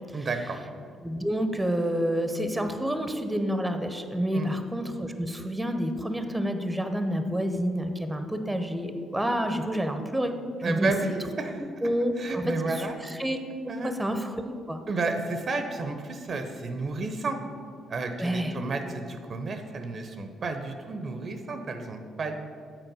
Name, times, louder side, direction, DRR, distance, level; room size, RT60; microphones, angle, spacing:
voice 1, 0.1-0.6 4.3-4.5 10.6-11.6 12.2-13.0 13.7-13.9 14.9-17.4 17.9-22.4, right 3 dB, 50° right, 6 dB, 0.7 m, -31 dB
voice 2, 1.0-10.3 10.7-10.9 11.6-12.4 12.8-13.4 13.8-14.4 14.7-14.8 18.2-18.5, equal, 10° right, 7 dB, 0.8 m, -29 dB
7.8 x 4.3 x 6.1 m, 2.2 s
hypercardioid pair, 50°, 0 cm